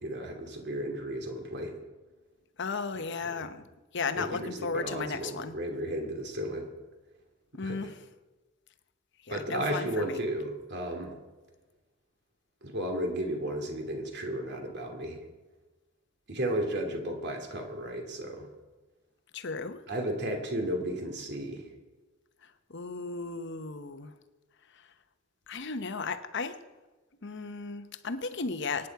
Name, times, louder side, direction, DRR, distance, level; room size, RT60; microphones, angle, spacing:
voice 1, 0.0-1.8 3.4-3.5 4.1-6.7 7.6-7.8 9.3-11.1 12.6-15.2 16.3-18.5 19.9-21.6, right 1 dB, 55° right, 2.7 m, -34 dB
voice 2, 2.6-3.6 3.9-5.6 7.5-8.0 9.3-10.2 19.3-19.8 22.7-24.1 25.5-26.6 27.2-28.9, left 4 dB, 60° left, 1.0 m, -35 dB
24.0 x 9.9 x 4.7 m
head